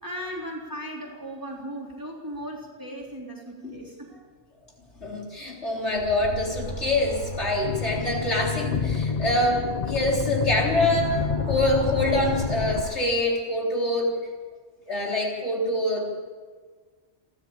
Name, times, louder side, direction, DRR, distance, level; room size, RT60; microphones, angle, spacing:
voice 1, 0.0-4.2, equal, 15° right, -1 dB, 3.7 m, -37 dB
voice 2, 5.0-11.2 11.5-14.2 14.9-16.2, left 1 dB, 55° left, -1 dB, 4.2 m, -25 dB
sound 1, 5.9-8.4 10.4-13.0, left 1 dB, 40° right, 3.6 m, -35 dB
sound 2, 7.6-12.8, left 6 dB, 35° left, 0.7 m, -29 dB
28.5 x 12.5 x 8.8 m, 1.5 s
omnidirectional pair, 1.4 m